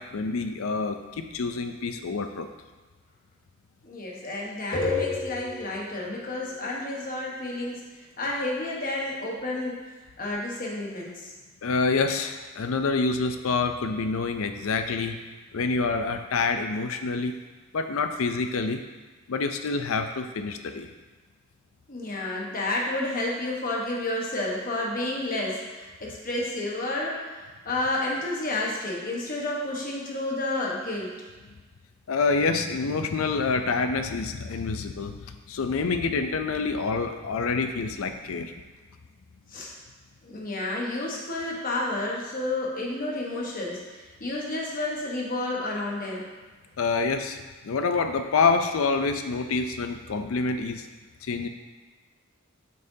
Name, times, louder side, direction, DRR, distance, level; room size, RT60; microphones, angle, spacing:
voice 1, 0.1-2.5 11.6-15.2 15.5-17.3 17.7-18.8 19.3-20.9 32.1-38.5 46.8-47.4 47.6-50.8 51.2-51.5, left 4 dB, 75° left, 7 dB, 0.5 m, -27 dB
voice 2, 3.8-7.9 8.2-11.3 21.9-31.2 39.5-39.7 40.2-46.2, left 2 dB, 40° left, -3 dB, 1.2 m, -30 dB
7.5 x 5.5 x 2.7 m, 1.3 s
head